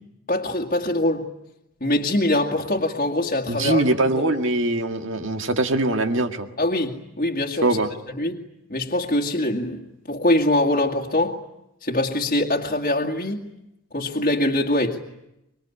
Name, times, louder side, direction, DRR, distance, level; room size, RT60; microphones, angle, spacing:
voice 1, 0.3-1.3 1.8-3.9 6.6-7.8 8.1-8.4 8.7-9.8 10.1-11.4 11.8-13.4 13.9-15.0, left 1 dB, 40° left, 1 dB, 2.1 m, -23 dB
voice 2, 3.5-6.5 7.6-7.9, right 2 dB, 60° right, 6 dB, 2.0 m, -22 dB
25.5 x 23.0 x 9.9 m, 0.88 s
head